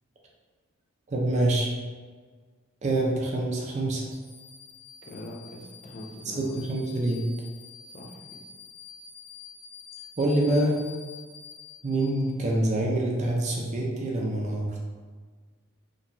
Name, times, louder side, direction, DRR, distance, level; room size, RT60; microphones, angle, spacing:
voice 1, 1.1-1.7 2.8-4.0 6.4-7.2 10.2-10.8 11.8-14.8, right 1 dB, 35° right, -2 dB, 0.4 m, -26 dB
sound 1, 4.1-12.6, left 6 dB, 90° left, 0.9 m, -48 dB
voice 2, 5.0-6.5 7.9-8.4, left 1 dB, 35° left, -1 dB, 0.4 m, -42 dB
2.9 x 2.2 x 2.5 m, 1.5 s
head